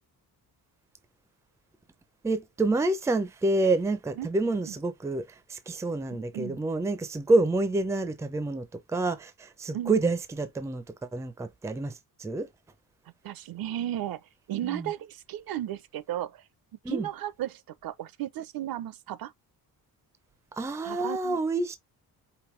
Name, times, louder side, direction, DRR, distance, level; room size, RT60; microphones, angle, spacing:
voice 1, 2.2-5.2 5.5-10.8 11.1-12.5 14.6-14.9 16.8-17.1 20.6-21.8, right 2 dB, 10° right, 0.4 m, -28 dB
voice 2, 6.1-6.6 9.7-10.1 13.2-16.5 16.9-19.3 20.8-21.4, right 12 dB, 65° right, 0.5 m, -35 dB
5.1 x 2.6 x 3.1 m
wide cardioid pair, 160°, 39 cm